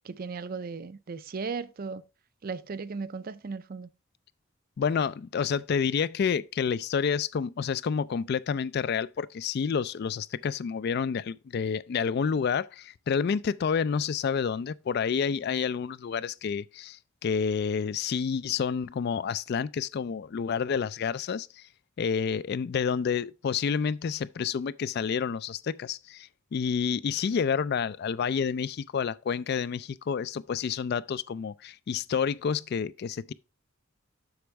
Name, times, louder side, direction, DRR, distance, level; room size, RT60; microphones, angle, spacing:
voice 1, 0.0-2.0 2.4-3.9, right 4 dB, 45° right, 0.4 m, -36 dB
voice 2, 4.8-21.7 22.0-33.3, left 6 dB, 50° left, 0.3 m, -29 dB
8.0 x 6.1 x 3.2 m
head